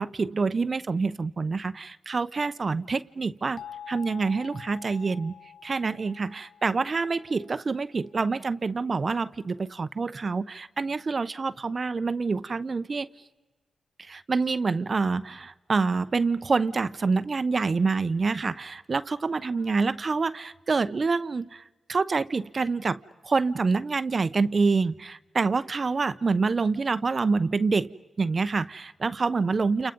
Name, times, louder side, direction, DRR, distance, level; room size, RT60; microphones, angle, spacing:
voice 1, 0.0-3.6 3.9-5.3 5.6-13.1 14.0-21.6 21.9-29.9, right 4 dB, 45° right, 14 dB, 0.9 m, -27 dB
sound 1, 3.6-8.3, left 8 dB, 60° left, 0.9 m, -47 dB
30.0 x 29.0 x 5.4 m, 1.1 s
cardioid pair, 60°, 0 cm